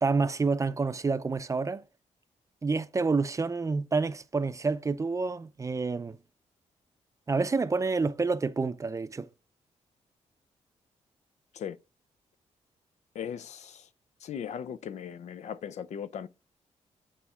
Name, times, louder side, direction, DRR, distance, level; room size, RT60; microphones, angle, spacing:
voice 1, 0.0-1.8 2.6-6.2 7.3-9.3, right 4 dB, 25° right, 0.6 m, -28 dB
voice 2, 13.1-13.9 14.2-16.3, left 8 dB, 70° left, 0.5 m, -38 dB
9.9 x 4.3 x 3.6 m
cardioid pair, 105°, 12 cm